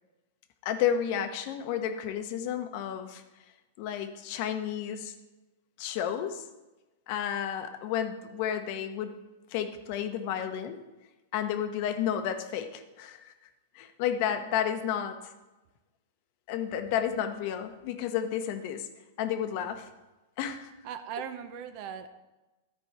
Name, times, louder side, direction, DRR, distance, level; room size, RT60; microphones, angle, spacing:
voice 1, 0.6-3.2 3.8-5.1 5.8-6.4 7.1-9.1 9.5-10.8 11.3-13.3 13.7-15.2 16.5-18.9 19.2-19.9 20.4-20.7, left 9 dB, 50° left, 8 dB, 1.0 m, -31 dB
voice 2, 20.8-22.1, right 8 dB, 45° right, 9 dB, 0.7 m, -38 dB
13.5 x 4.6 x 4.7 m, 1.1 s
hypercardioid pair, 135°, 0 cm